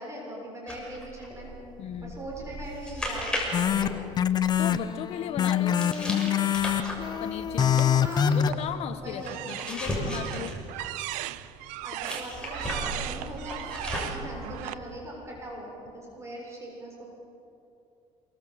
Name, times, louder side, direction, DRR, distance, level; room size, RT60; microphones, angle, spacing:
voice 1, 0.0-1.5 2.0-3.8 8.0-8.6 9.0-9.6 11.8-17.0, right 1 dB, 20° right, -2 dB, 7.1 m, -40 dB
sound 1, 0.7-4.8 5.8-11.3 12.0-14.4, equal, 5° left, 6.7 m, -36 dB
voice 2, 1.8-2.1 4.6-6.3 7.2-7.9 8.3-10.5, left 9 dB, 55° left, 10 dB, 1.4 m, -36 dB
sound 2, 3.5-8.5, left 9 dB, 35° left, 0.9 m, -25 dB
sound 3, 7.6-8.7 9.2-14.7, right 16 dB, 85° right, 0.8 m, -37 dB
28.0 x 23.5 x 7.8 m, 2.7 s
cardioid pair, 130°, 13 cm